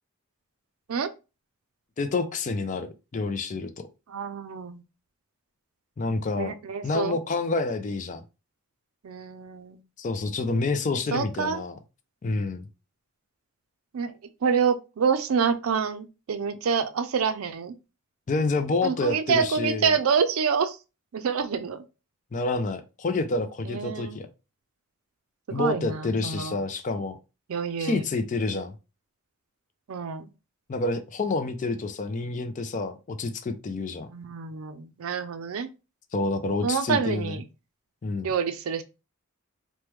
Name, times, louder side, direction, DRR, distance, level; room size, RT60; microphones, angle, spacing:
voice 1, 2.0-3.7 6.0-6.5 6.8-8.2 10.0-11.8 12.2-12.7 18.3-20.0 22.3-24.3 25.5-27.2 27.8-28.7 30.7-34.1 36.1-37.4 38.0-38.3, left 3 dB, 35° left, 0.3 m, -28 dB
voice 2, 4.1-4.8 6.4-7.2 9.0-9.8 11.1-11.6 13.9-14.1 14.4-17.7 18.8-20.8 21.1-21.8 23.6-24.2 25.5-26.6 27.5-28.0 29.9-30.3 34.1-35.7 36.6-37.4 38.2-38.8, right 6 dB, 75° right, 0.4 m, -27 dB
3.0 x 2.2 x 3.3 m
head